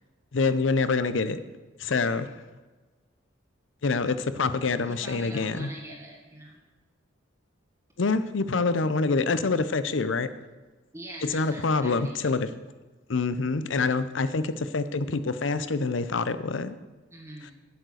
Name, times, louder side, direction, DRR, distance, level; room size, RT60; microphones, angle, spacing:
voice 1, 0.3-1.4 1.8-2.3 3.8-5.7 8.0-10.3 11.2-12.5 13.1-16.8, left 4 dB, 75° left, 13 dB, 0.7 m, -26 dB
voice 2, 4.8-6.6 10.9-12.4 17.1-17.5, right 1 dB, 15° right, -1 dB, 1.5 m, -43 dB
10.5 x 8.3 x 6.4 m, 1.3 s
head